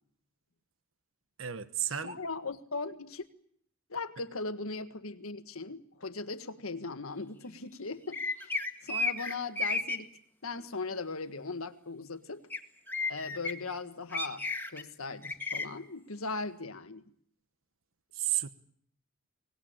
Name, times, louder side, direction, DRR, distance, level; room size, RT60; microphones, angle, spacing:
voice 1, 1.4-2.2 18.1-18.5, right 12 dB, 70° right, 12 dB, 1.2 m, -32 dB
voice 2, 2.0-3.3 3.9-8.5 8.8-10.1 10.4-12.4 13.1-14.4 14.7-17.1, left 3 dB, 85° left, 10 dB, 1.7 m, -38 dB
sound 1, 8.1-10.0 12.5-12.6 12.9-13.5 14.1-14.8 15.2-15.7, left 3 dB, 10° left, 1.8 m, -32 dB
24.5 x 19.5 x 8.9 m, 0.65 s
head